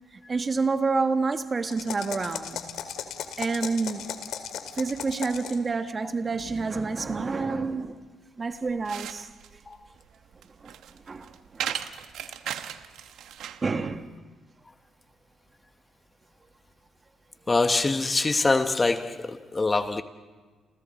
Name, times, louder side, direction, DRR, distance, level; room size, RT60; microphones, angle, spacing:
voice 1, 0.3-2.6 3.4-4.0 4.8-8.0 8.4-9.3 10.6-10.7 11.1-11.8 13.6-14.1, right 4 dB, 35° right, 1.3 m, -28 dB
sound 1, 1.7-5.7, left 8 dB, 80° left, 2.1 m, -36 dB
sound 2, 8.5-13.7, right 10 dB, 80° right, 1.0 m, -37 dB
voice 2, 17.5-20.0, left 3 dB, 25° left, 1.2 m, -24 dB
30.0 x 28.5 x 4.3 m
cardioid pair, 90°, 0 cm